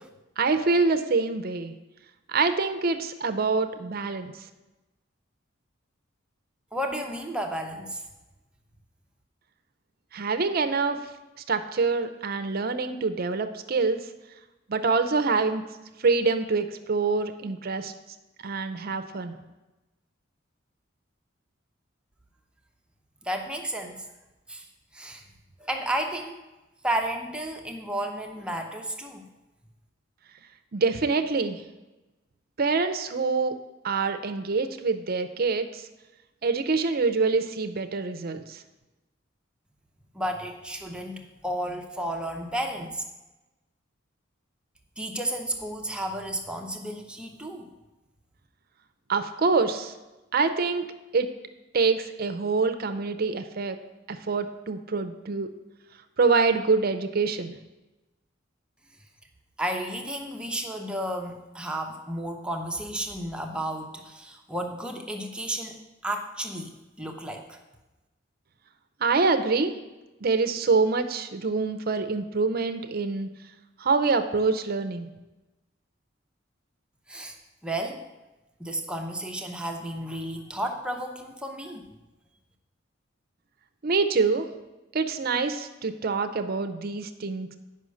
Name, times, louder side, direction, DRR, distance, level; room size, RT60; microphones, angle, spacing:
voice 1, 0.4-1.7 2.3-4.3 10.1-11.0 11.5-14.0 14.7-15.6 16.0-17.9 18.4-19.4 30.7-31.6 32.6-33.6 33.8-35.9 36.4-38.6 49.1-49.9 50.3-51.3 51.7-53.8 54.1-55.5 56.2-57.6 69.0-69.7 70.2-73.3 73.8-75.1 83.8-84.5 84.9-87.5, right 4 dB, 50° right, 8 dB, 0.6 m, -25 dB
voice 2, 6.7-8.0 23.2-24.1 24.5-24.6 24.9-25.2 25.6-26.3 26.8-29.2 40.1-43.0 45.0-47.7 59.6-67.6 77.1-77.4 77.6-78.0 78.6-81.9, right 1 dB, 5° right, 2 dB, 0.7 m, -32 dB
9.6 x 5.5 x 6.4 m, 1.1 s
head